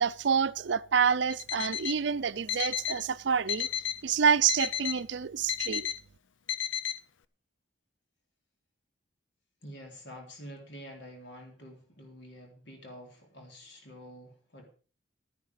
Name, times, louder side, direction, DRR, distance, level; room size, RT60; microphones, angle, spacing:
voice 1, 0.0-3.7 4.0-5.9, right 6 dB, 70° right, 0.5 m, -27 dB
Alarm, 1.3-2.0 2.5-3.0 3.5-4.0 4.5-5.0 5.5-6.0 6.5-7.0, left 9 dB, 80° left, 0.7 m, -33 dB
voice 2, 9.6-14.7, equal, 65° left, 3.5 m, -48 dB
13.5 x 9.7 x 4.8 m
head